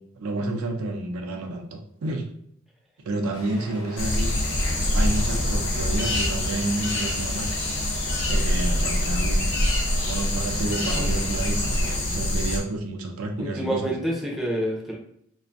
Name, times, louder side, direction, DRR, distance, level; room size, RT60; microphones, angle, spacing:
voice 1, 0.2-2.3 3.1-4.3 4.9-7.7 8.3-13.9, right 2 dB, 70° right, 3 dB, 0.4 m, -30 dB
sound 1, 3.3-12.0, left 1 dB, 90° left, 0.8 m, -42 dB
sound 2, 4.0-12.6, left 1 dB, 55° left, 0.6 m, -25 dB
voice 2, 13.4-15.0, equal, ahead, -3 dB, 0.4 m, -27 dB
2.4 x 2.1 x 2.5 m, 0.69 s
head